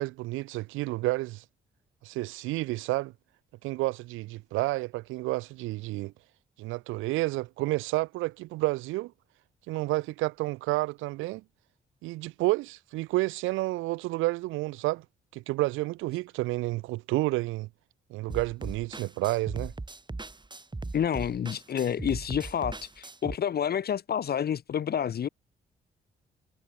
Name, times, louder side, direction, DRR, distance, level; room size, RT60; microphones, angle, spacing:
voice 1, 0.0-1.4 2.0-3.1 3.6-6.1 6.6-9.1 9.7-11.4 12.0-15.0 15.3-17.7 18.1-19.7, right 20 dB, 85° right, 0.5 m, -30 dB
sound 1, 18.3-23.4, right 2 dB, 25° right, 4.0 m, -39 dB
voice 2, 20.9-25.3, left 8 dB, 55° left, 0.8 m, -29 dB
supercardioid pair, 55°, 20 cm